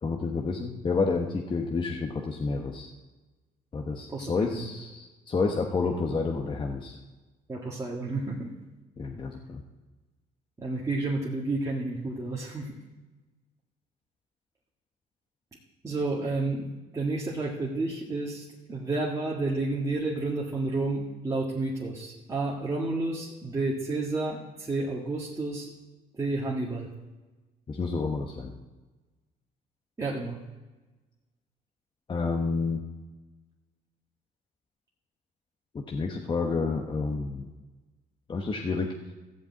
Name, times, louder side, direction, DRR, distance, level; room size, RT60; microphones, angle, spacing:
voice 1, 0.0-2.9 3.7-7.0 9.0-9.6 27.7-28.5 32.1-32.8 35.7-37.5 38.3-38.9, left 4 dB, 30° left, 1 dB, 1.1 m, -29 dB
voice 2, 4.1-4.7 7.5-8.5 10.6-12.7 15.8-16.7 16.9-25.7 26.2-26.9 30.0-30.4, right 2 dB, 20° right, -5 dB, 1.9 m, -30 dB
14.5 x 5.2 x 8.4 m, 1.2 s
cardioid pair, 110°, 17 cm